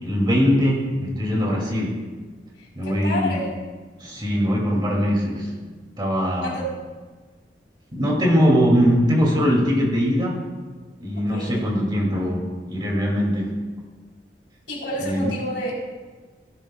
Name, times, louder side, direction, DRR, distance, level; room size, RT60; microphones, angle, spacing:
voice 1, 0.0-2.0 2.8-3.4 4.0-5.5 6.0-6.6 7.9-10.4 11.0-13.5 15.0-15.3, equal, 25° right, -2 dB, 2.4 m, -21 dB
voice 2, 2.6-3.5 6.4-6.8 11.2-11.6 14.7-15.8, equal, 85° left, -3 dB, 3.7 m, -29 dB
15.5 x 11.5 x 2.3 m, 1.4 s
head